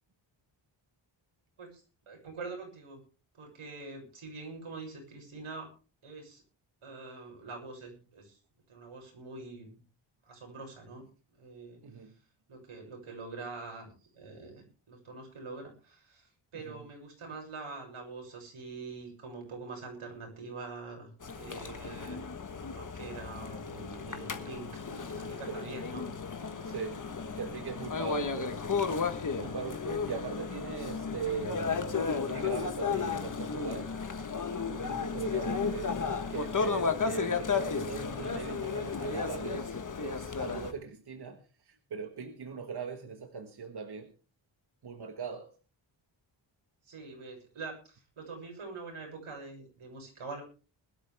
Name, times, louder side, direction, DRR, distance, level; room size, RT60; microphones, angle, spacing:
voice 1, 1.6-3.0 3.3-5.7 6.0-6.4 6.8-8.4 8.7-9.8 10.2-11.0 11.4-11.8 12.5-22.3 22.7-24.8 25.1-26.1 35.5-35.6 46.8-50.4, right 3 dB, 80° right, 6.9 m, -45 dB
voice 2, 11.8-12.1 16.7-16.8 24.9-25.0 25.3-25.8 26.6-27.0 27.3-29.0 29.3-31.8 32.2-33.9 34.8-36.0 36.3-44.1 44.8-45.5, right 5 dB, 50° right, 1.5 m, -40 dB
sound 1, 21.2-40.7, left 5 dB, 35° left, 1.4 m, -34 dB
21.0 x 12.5 x 3.5 m
wide cardioid pair, 170°, 50 cm